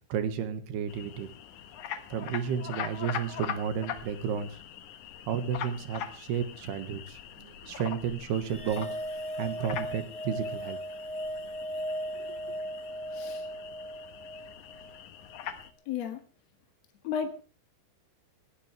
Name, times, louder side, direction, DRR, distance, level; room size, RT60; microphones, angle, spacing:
voice 1, 0.1-1.3 2.1-4.6 5.3-9.0 9.4-10.8 12.1-12.4, right 8 dB, 65° right, 9 dB, 3.3 m, -32 dB
sound 1, 0.9-15.7, left 9 dB, 80° left, 1.7 m, -42 dB
sound 2, 8.4-15.0, equal, 5° left, 0.8 m, -37 dB
voice 2, 13.1-13.4 15.9-16.2 17.0-17.4, left 7 dB, 50° left, 5 dB, 2.1 m, -33 dB
19.5 x 17.0 x 3.3 m, 0.36 s
omnidirectional pair, 5.3 m